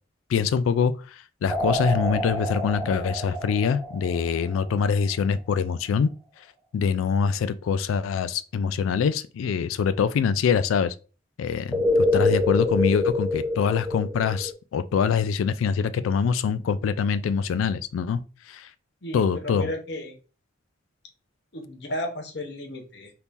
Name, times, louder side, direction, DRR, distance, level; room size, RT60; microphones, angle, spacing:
voice 1, 0.3-6.1 6.7-10.9 11.4-18.2 18.5-18.7 19.1-19.7, left 6 dB, 85° left, 0.3 m, -24 dB
sound 1, 1.5-4.8 11.7-14.5, left 2 dB, 5° right, 0.5 m, -26 dB
voice 2, 19.0-20.2 21.5-23.1, left 1 dB, 55° left, 0.8 m, -33 dB
3.6 x 2.9 x 2.5 m
head